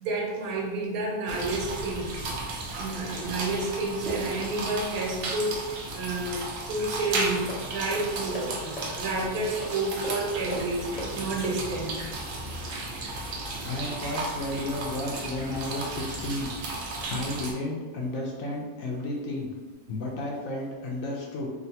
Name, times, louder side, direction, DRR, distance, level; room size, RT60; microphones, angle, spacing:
voice 1, 0.0-2.2 2.8-5.6 5.9-7.4 7.7-10.9 11.1-12.1, right 2 dB, 85° right, -1 dB, 1.2 m, -30 dB
sound 1, 1.3-17.5, right 2 dB, 65° right, 0.6 m, -34 dB
sound 2, 7.1-12.0, equal, 35° left, 0.7 m, -40 dB
voice 2, 13.6-16.5 16.8-19.5 19.9-21.5, left 2 dB, 70° left, -2 dB, 0.9 m, -33 dB
3.1 x 2.4 x 2.7 m, 1.3 s
omnidirectional pair, 1.5 m